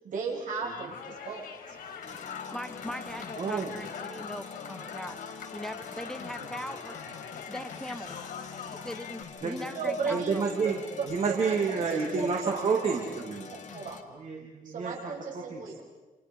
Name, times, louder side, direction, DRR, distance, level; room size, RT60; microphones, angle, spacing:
voice 1, 0.0-1.5 9.7-11.1 11.4-13.0 13.5-14.0 14.6-15.8, right 4 dB, 65° right, -1 dB, 7.8 m, -35 dB
sound 1, 0.6-9.2, left 6 dB, 90° left, 3.9 m, -43 dB
sound 2, 2.0-14.0, left 6 dB, 55° left, 2.4 m, -45 dB
voice 2, 2.5-5.2 5.5-7.0 7.5-8.2 8.7-10.5, equal, 5° left, 8 dB, 1.1 m, -40 dB
voice 3, 3.4-3.8 9.4-9.6 10.1-10.8 11.0-13.6 14.1-15.0 15.3-15.6, right 5 dB, 50° right, 0 dB, 2.9 m, -29 dB
29.5 x 29.0 x 5.6 m, 1.2 s
wide cardioid pair, 145°, 15 cm